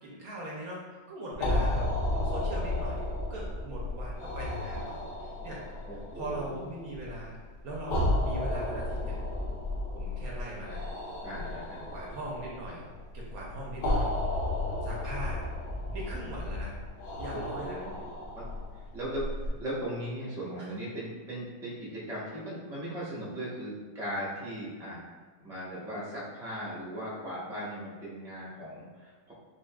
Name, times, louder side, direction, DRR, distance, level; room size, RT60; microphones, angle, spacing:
voice 1, 0.0-3.0 3.3-5.6 6.2-7.4 7.6-9.1 9.9-10.8 11.9-12.8 13.1-14.1 14.8-15.4 15.9-16.8 17.2-17.8 20.6-20.8, right 1 dB, 65° right, -4 dB, 1.1 m, -40 dB
sound 1, 1.3-19.5, left 1 dB, 70° left, 1.3 m, -33 dB
voice 2, 5.9-6.6 11.2-11.9 17.3-18.0 18.3-18.5 18.7-25.0 25.4-29.3, equal, ahead, -7 dB, 0.7 m, -38 dB
5.4 x 2.7 x 2.2 m, 1.4 s
omnidirectional pair, 1.8 m